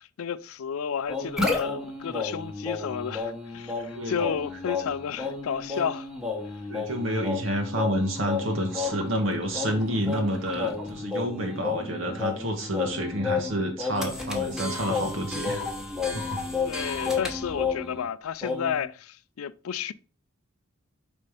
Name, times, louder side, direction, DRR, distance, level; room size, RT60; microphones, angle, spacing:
voice 1, 0.0-6.1 16.6-19.9, left 7 dB, 85° left, 0.4 m, -32 dB
sound 1, 1.1-18.1 18.4-18.8, left 4 dB, 5° right, 1.1 m, -32 dB
voice 2, 6.7-15.6 16.1-16.4, equal, 65° right, 1.1 m, -29 dB
5.4 x 4.1 x 4.9 m
head